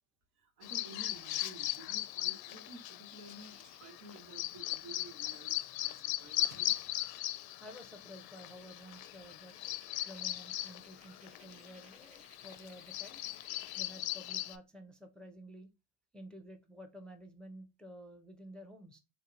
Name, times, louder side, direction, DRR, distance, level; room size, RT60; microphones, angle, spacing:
voice 1, 0.3-6.7, right 3 dB, 75° right, 1.1 m, -53 dB
Bird vocalization bird call bird song, 0.6-14.6, left 15 dB, 55° left, 0.5 m, -39 dB
sound 1, 3.1-4.5 5.6-5.7 5.9-7.5 7.9-8.0 8.5-13.9, right 2 dB, 15° right, 0.9 m, -63 dB
voice 2, 7.6-9.6 10.1-13.2 13.8-15.7 16.1-19.0, equal, ahead, 0.4 m, -52 dB
3.5 x 2.7 x 2.5 m
hypercardioid pair, 70°, 46 cm